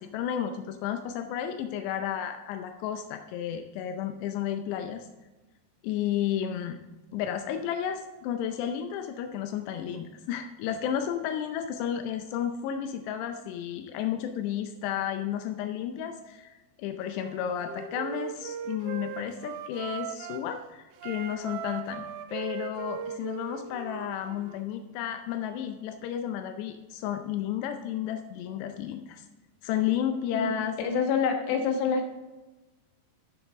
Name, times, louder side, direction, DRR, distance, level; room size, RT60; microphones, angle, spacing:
voice 1, 0.0-5.1 5.8-6.8 7.1-29.3 29.6-30.8, left 9 dB, 85° left, 6 dB, 2.8 m, -32 dB
Wind instrument woodwind instrument, 17.1-20.5 20.9-24.6, right 8 dB, 85° right, 2.9 m, -39 dB
voice 2, 30.8-32.1, left 5 dB, 70° left, 3 dB, 3.0 m, -26 dB
12.5 x 7.1 x 3.5 m, 1.1 s
omnidirectional pair, 4.8 m